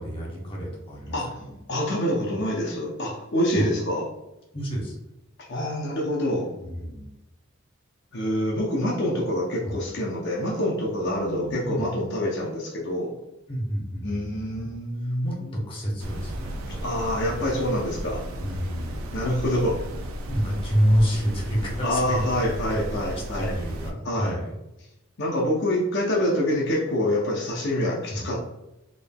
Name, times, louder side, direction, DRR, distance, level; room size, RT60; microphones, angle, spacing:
voice 1, 0.0-1.5 3.5-3.6 4.5-5.0 6.6-7.0 9.6-9.8 11.0-11.9 13.5-14.7 15.0-17.3 18.4-19.2 20.2-22.2 22.7-24.5 28.1-28.3, equal, 25° left, -2 dB, 0.9 m, -29 dB
voice 2, 1.7-4.1 5.5-6.5 8.1-13.1 14.0-15.3 16.7-18.2 19.1-19.8 21.8-23.5 24.0-24.4 25.2-28.4, left 1 dB, 55° left, -2 dB, 0.6 m, -26 dB
sound 1, 16.0-23.9, right 1 dB, 90° right, 0.5 m, -34 dB
3.7 x 3.5 x 2.2 m, 0.94 s
head